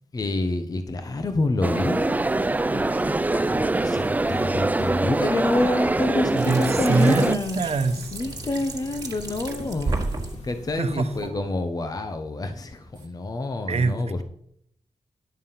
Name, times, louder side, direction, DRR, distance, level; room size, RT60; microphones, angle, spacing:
voice 1, 0.1-2.2 2.7-7.6 8.1-10.0 10.4-14.2, left 2 dB, 35° left, 7 dB, 0.9 m, -27 dB
sound 1, 1.6-7.4, right 2 dB, 15° right, 0.4 m, -24 dB
sound 2, 1.7-11.3, left 3 dB, 85° left, 4.5 m, -42 dB
voice 2, 6.3-8.2 10.7-11.4 13.7-14.2, right 4 dB, 65° right, 8 dB, 1.0 m, -25 dB
sound 3, 6.4-10.4 12.9-13.1, right 3 dB, 35° right, 1.7 m, -33 dB
11.5 x 7.2 x 5.7 m, 0.68 s
wide cardioid pair, 145°, 11 cm